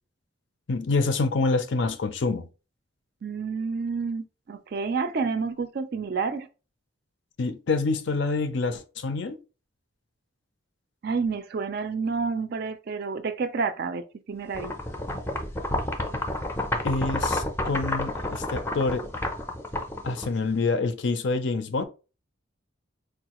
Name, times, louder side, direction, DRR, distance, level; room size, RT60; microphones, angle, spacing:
voice 1, 0.7-2.5 7.4-9.4 16.8-19.0 20.0-21.8, left 3 dB, 60° left, 0.5 m, -26 dB
voice 2, 3.2-6.5 11.0-14.8, right 4 dB, 50° right, 0.4 m, -29 dB
sound 1, 14.5-20.7, left 1 dB, 10° left, 0.5 m, -30 dB
4.5 x 2.3 x 2.9 m
head